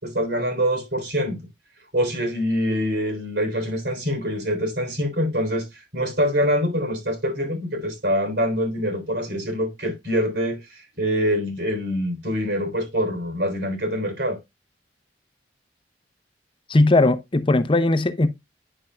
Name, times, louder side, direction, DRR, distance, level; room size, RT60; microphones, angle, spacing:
voice 1, 0.0-1.4 1.9-14.4, equal, 70° right, 3.8 m, -25 dB
voice 2, 16.7-18.3, left 2 dB, 30° left, 0.7 m, -18 dB
10.0 x 6.7 x 2.3 m
head